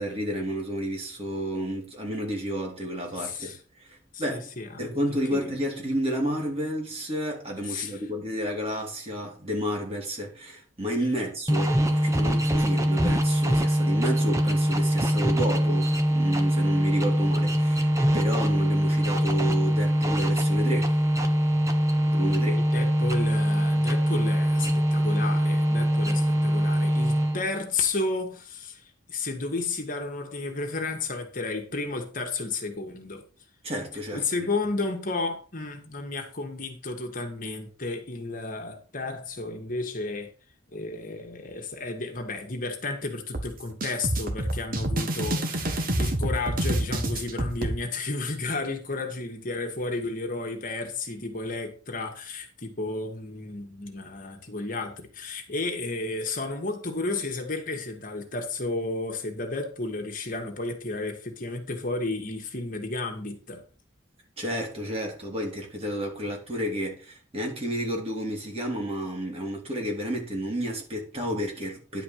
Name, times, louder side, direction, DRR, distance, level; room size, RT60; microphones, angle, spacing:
voice 1, 0.0-3.5 3.8-4.5 4.8-21.0 22.1-22.6 33.6-34.2 64.4-72.0, equal, 30° right, 3.2 m, -31 dB
voice 2, 3.2-3.6 4.1-4.9 5.3-5.5 7.7-8.0 22.7-33.3 34.1-40.3 40.7-63.6, left 3 dB, 45° left, 1.9 m, -32 dB
sound 1, 11.5-27.6, equal, 15° right, 1.1 m, -23 dB
sound 2, 43.3-47.7, right 1 dB, 50° right, 1.5 m, -28 dB
10.5 x 5.1 x 6.5 m
head